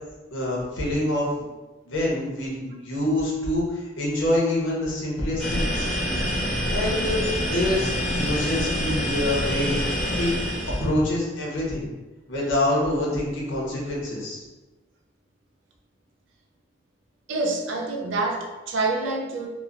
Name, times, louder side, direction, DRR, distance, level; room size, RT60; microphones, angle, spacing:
voice 1, 0.3-1.4 1.9-5.9 6.7-10.3 10.8-11.9 12.3-14.4, left 1 dB, 80° left, -4 dB, 0.8 m, -26 dB
sound 1, 5.4-10.9, equal, 5° left, 0.6 m, -26 dB
voice 2, 17.3-19.5, right 3 dB, 80° right, 2 dB, 0.4 m, -27 dB
2.8 x 2.1 x 2.4 m, 1.2 s
head